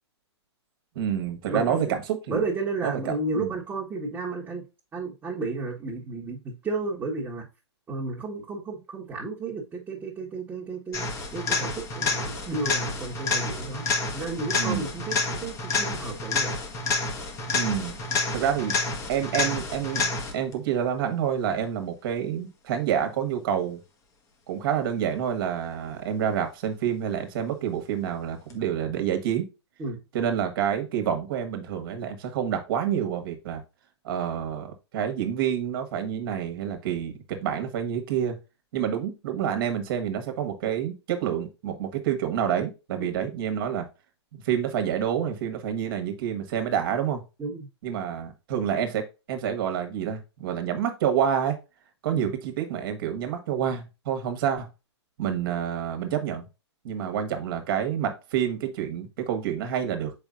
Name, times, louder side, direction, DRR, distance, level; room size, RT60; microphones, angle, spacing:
voice 1, 0.9-2.4 2.8-3.5 14.6-14.8 17.5-18.0 18.3-18.8 19.1-20.1 20.3-23.8 24.5-29.5 30.1-33.6 34.0-38.4 38.7-43.9 44.3-47.2 47.8-51.6 52.0-54.7 55.2-56.4 56.8-60.1, right 9 dB, 50° right, 1.6 m, -28 dB
voice 2, 1.5-2.0 2.3-4.6 4.9-7.4 7.9-11.1 11.3-13.8 14.1-16.5 29.8-30.0 43.0-43.1 47.4-47.7 52.1-52.3, right 3 dB, 15° right, 1.5 m, -32 dB
sound 1, 10.9-20.5 28.5-28.6, left 3 dB, 20° left, 1.3 m, -29 dB
7.0 x 5.2 x 2.6 m
hypercardioid pair, 125°, 15 cm